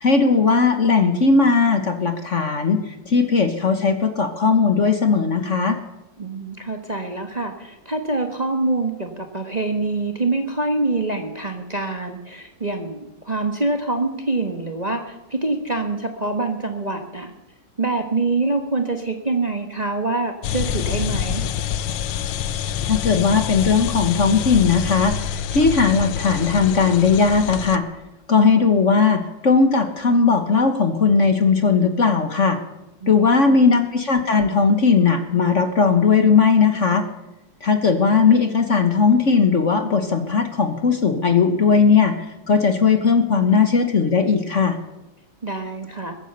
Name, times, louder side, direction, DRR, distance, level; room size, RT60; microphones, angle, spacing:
voice 1, 0.0-2.8 3.1-5.8 22.9-27.8 28.3-32.6 33.1-37.0 37.6-42.1 42.5-44.8, left 5 dB, 45° left, 7 dB, 1.4 m, -18 dB
voice 2, 6.2-17.3 17.8-21.4 33.0-33.6 45.4-46.1, right 2 dB, 25° right, 4 dB, 1.2 m, -25 dB
sound 1, 20.4-27.8, left 9 dB, 80° left, 1.4 m, -26 dB
21.5 x 9.4 x 6.7 m, 0.94 s
omnidirectional pair, 2.1 m